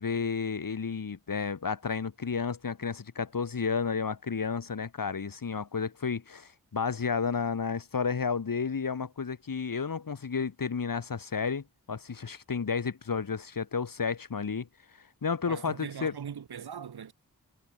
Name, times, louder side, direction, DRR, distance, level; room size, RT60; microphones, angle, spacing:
voice 1, 0.0-14.7 15.2-16.1, left 5 dB, 60° left, 1.8 m, -32 dB
voice 2, 15.5-17.1, right 7 dB, 80° right, 1.2 m, -40 dB
cardioid pair, 40°, 37 cm